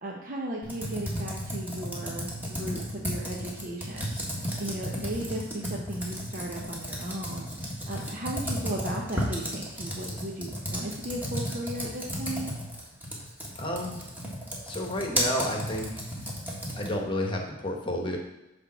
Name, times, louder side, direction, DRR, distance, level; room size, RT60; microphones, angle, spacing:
voice 1, 0.0-12.5, right 1 dB, 40° right, -2 dB, 0.8 m, -36 dB
Computer keyboard, 0.6-17.1, equal, 10° right, 1.6 m, -34 dB
voice 2, 13.6-14.0 14.6-15.9 16.8-18.2, left 1 dB, 25° left, 1 dB, 1.1 m, -30 dB
10.0 x 3.5 x 6.1 m, 0.95 s
head